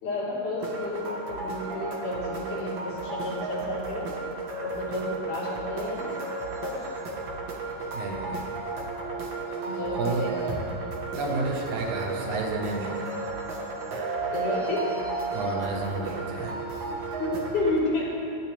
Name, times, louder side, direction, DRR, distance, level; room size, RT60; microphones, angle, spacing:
voice 1, 0.0-4.1 4.6-6.1 6.6-6.8 9.6-10.6 11.3-11.4 14.3-14.9 17.2-18.1, left 2 dB, 75° left, -9 dB, 5.3 m, -31 dB
sound 1, 0.6-17.8, right 3 dB, 50° right, 1.6 m, -33 dB
voice 2, 7.9-8.5 9.9-10.2 11.1-13.0 15.3-16.5, right 3 dB, 75° right, 0 dB, 2.8 m, -31 dB
18.5 x 12.0 x 3.4 m, 2.8 s
omnidirectional pair, 3.6 m